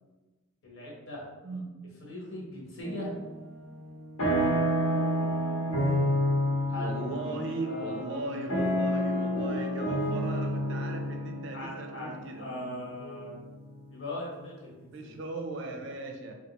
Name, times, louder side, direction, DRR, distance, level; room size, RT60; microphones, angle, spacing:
voice 1, 0.6-1.2 2.0-3.1 6.7-7.3 7.6-8.4 11.5-13.4 13.9-15.2, left 1 dB, 60° left, -5 dB, 1.1 m, -40 dB
sound 1, 2.8-3.4 3.7-13.7, equal, 85° left, 1.2 m, -29 dB
Wind instrument woodwind instrument, 6.8-13.5, left 2 dB, 40° left, 0.4 m, -45 dB
voice 2, 6.8-12.5 14.9-16.3, right 2 dB, 60° right, 3 dB, 0.4 m, -38 dB
3.4 x 2.4 x 2.9 m, 1.2 s
head